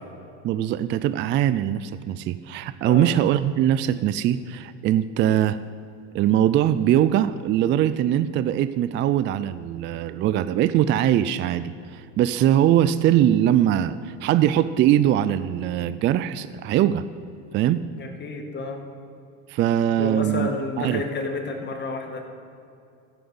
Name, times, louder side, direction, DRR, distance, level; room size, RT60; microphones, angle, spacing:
voice 1, 0.4-5.6 6.1-17.1 17.5-17.8 19.5-20.5 20.8-21.0, right 11 dB, 30° right, 14 dB, 0.4 m, -21 dB
voice 2, 18.0-18.9 20.0-22.2, left 3 dB, 25° left, 4 dB, 1.9 m, -30 dB
13.5 x 10.5 x 7.8 m, 2.6 s
supercardioid pair, 130°, 40 cm